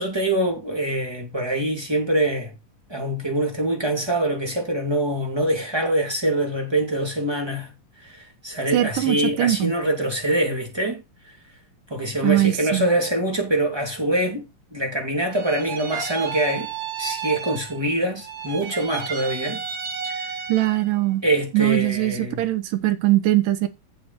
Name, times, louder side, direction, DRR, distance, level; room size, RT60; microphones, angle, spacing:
voice 1, 0.0-2.5 2.9-7.7 8.0-11.3 11.9-14.5 14.7-16.7 17.0-19.6 20.0-20.3 21.2-22.4, right 1 dB, 10° right, 2.3 m, -24 dB
voice 2, 8.7-9.7 12.2-12.9 20.5-21.2 21.5-23.7, right 15 dB, 80° right, 2.6 m, -21 dB
sound 1, 15.3-17.9 18.2-20.9, right 7 dB, 55° right, 1.3 m, -32 dB
8.2 x 7.8 x 4.3 m
omnidirectional pair, 3.8 m